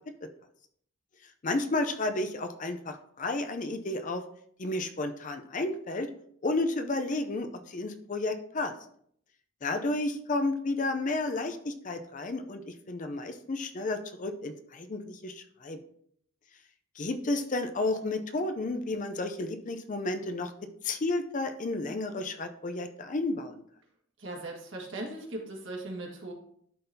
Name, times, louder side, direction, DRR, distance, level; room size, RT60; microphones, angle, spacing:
voice 1, 1.4-4.2 4.6-6.1 6.4-8.7 9.6-15.8 17.0-20.5 20.8-23.6, left 2 dB, 40° left, 7 dB, 0.5 m, -32 dB
voice 2, 24.2-26.3, right 2 dB, 60° right, -1 dB, 1.8 m, -38 dB
11.5 x 3.9 x 2.7 m, 0.65 s
head